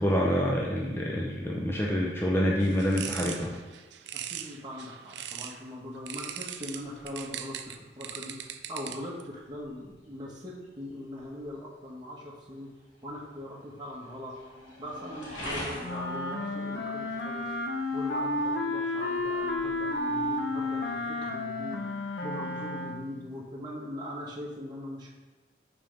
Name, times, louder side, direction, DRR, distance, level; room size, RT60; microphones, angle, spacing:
voice 1, 0.0-3.5, equal, 10° left, -2 dB, 0.6 m, -27 dB
sound 1, 2.6-5.6 6.1-9.2, right 10 dB, 65° right, 0.4 m, -40 dB
voice 2, 4.1-12.7 13.0-14.3 14.8-17.5 17.9-21.9 22.2-25.1, left 1 dB, 25° right, -4 dB, 1.1 m, -41 dB
sound 2, 5.6-21.0, equal, 85° left, 2.0 m, -47 dB
sound 3, 15.8-23.2, left 2 dB, 60° left, 0.7 m, -32 dB
5.6 x 4.4 x 5.3 m, 1.3 s
head